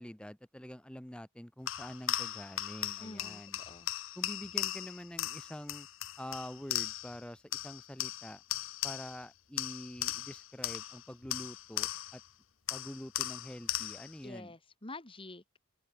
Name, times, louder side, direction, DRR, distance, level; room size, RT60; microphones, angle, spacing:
voice 1, 0.0-3.6 4.1-5.9 6.2-8.4 8.8-12.2 12.7-14.5, equal, 5° left, 0.8 m, -46 dB
sound 1, 1.7-7.2 7.5-9.3 9.6-12.3 12.7-14.2, left 13 dB, 90° left, 1.1 m, -38 dB
voice 2, 3.0-3.9 14.2-15.6, left 2 dB, 25° left, 2.5 m, -48 dB
open air
head